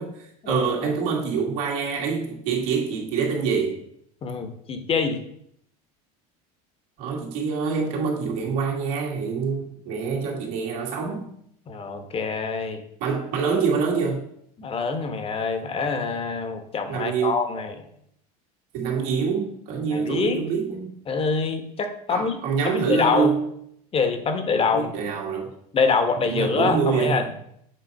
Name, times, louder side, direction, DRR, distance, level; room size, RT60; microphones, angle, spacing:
voice 1, 0.0-3.8 7.0-11.3 13.0-14.2 16.9-17.4 18.7-20.9 22.1-23.5 24.7-25.5 26.3-27.3, right 5 dB, 75° right, 2.2 m, -26 dB
voice 2, 4.2-5.2 11.7-12.8 14.6-17.9 19.9-20.4 21.1-23.4 23.9-24.9 25.7-27.4, left 5 dB, 30° left, 1.0 m, -25 dB
7.5 x 4.1 x 5.3 m
supercardioid pair, 115°, 19 cm